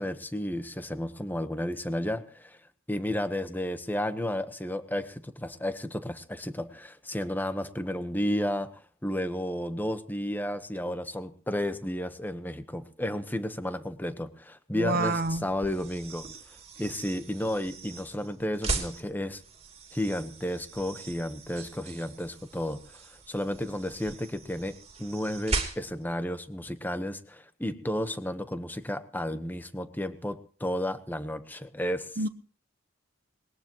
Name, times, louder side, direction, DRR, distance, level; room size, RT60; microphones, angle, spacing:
voice 1, 0.0-2.6 2.9-8.7 9.0-16.2 16.8-19.4 19.9-22.8 23.3-32.1, left 1 dB, 10° left, 10 dB, 1.2 m, -32 dB
voice 2, 14.7-15.5 32.2-32.3, right 2 dB, 45° right, 10 dB, 0.9 m, -27 dB
sound 1, 15.0-26.1, right 3 dB, 30° right, 3.1 m, -39 dB
21.0 x 19.0 x 3.1 m, 0.38 s
head